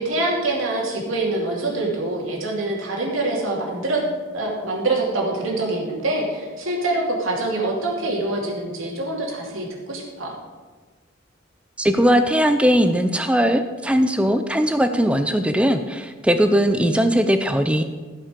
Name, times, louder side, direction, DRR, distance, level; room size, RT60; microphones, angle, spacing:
voice 1, 0.0-4.0 4.3-10.3, right 2 dB, 85° right, -2 dB, 2.7 m, -25 dB
voice 2, 11.8-17.8, equal, 5° right, 8 dB, 0.4 m, -19 dB
15.5 x 5.9 x 5.1 m, 1.4 s
head